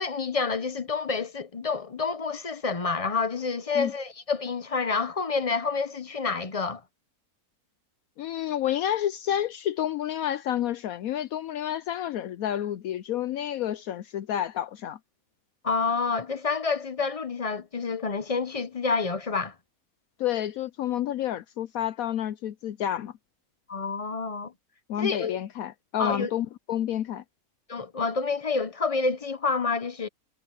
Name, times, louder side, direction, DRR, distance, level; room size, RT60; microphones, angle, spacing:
voice 1, 0.0-6.8 15.6-19.5 23.7-24.5 25.0-25.4 26.0-26.3 27.7-30.1, left 4 dB, 35° left, 0.5 m, -28 dB
voice 2, 8.2-15.0 20.2-23.1 24.9-27.2, left 11 dB, 70° left, 1.0 m, -29 dB
omnidirectional pair, 1.6 m